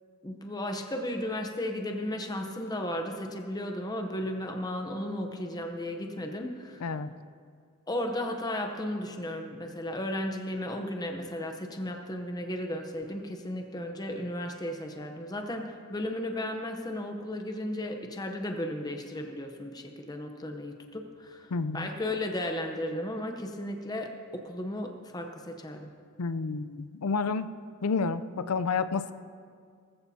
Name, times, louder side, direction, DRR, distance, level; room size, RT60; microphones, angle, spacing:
voice 1, 0.2-6.9 7.9-25.9, left 1 dB, 20° left, 4 dB, 0.8 m, -35 dB
voice 2, 21.5-21.9 26.2-27.5 27.8-29.1, left 4 dB, 90° left, 12 dB, 0.5 m, -30 dB
18.5 x 14.5 x 2.8 m, 2.1 s
head